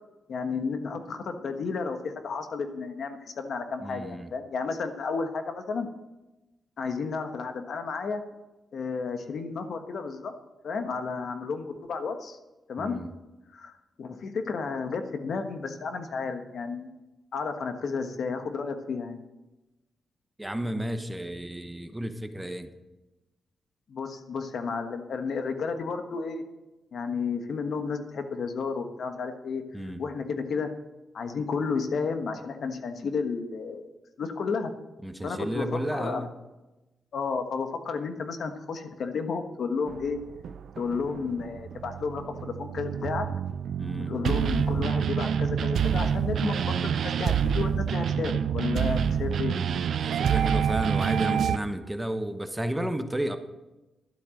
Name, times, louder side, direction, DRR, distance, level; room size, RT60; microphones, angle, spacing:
voice 1, 0.3-5.9 6.8-8.2 8.7-10.3 10.6-12.4 12.7-13.0 13.5-16.9 17.3-19.2 23.9-26.4 26.9-30.7 31.1-33.9 34.2-34.7 35.2-36.3 37.1-40.2 40.8-43.3 44.1-49.5, left 5 dB, 65° left, 7 dB, 1.3 m, -32 dB
voice 2, 3.8-4.3 12.8-13.1 20.4-22.7 29.7-30.0 35.0-36.3 43.8-44.1 49.9-53.4, right 1 dB, 10° right, 8 dB, 0.9 m, -32 dB
sound 1, 39.9-51.6, right 7 dB, 75° right, 0.4 m, -27 dB
12.0 x 8.5 x 6.4 m, 1.0 s
cardioid pair, 110°, 0 cm